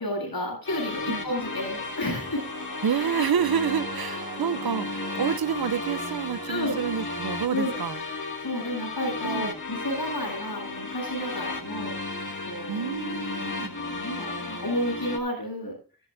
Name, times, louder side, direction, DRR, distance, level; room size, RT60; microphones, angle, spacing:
voice 1, 0.0-2.4 6.5-6.8 7.5-7.7 8.4-11.9 12.5-12.9 13.4-15.7, left 1 dB, 85° left, 7.6 m, -31 dB
sound 1, 0.6-15.2, left 3 dB, 55° left, 2.3 m, -34 dB
sound 2, 1.8-7.9, right 1 dB, 30° right, 1.5 m, -42 dB
voice 2, 2.8-8.0 9.2-9.5 12.7-13.8, right 8 dB, 80° right, 0.6 m, -28 dB
13.5 x 12.5 x 2.6 m
wide cardioid pair, 40°, 36 cm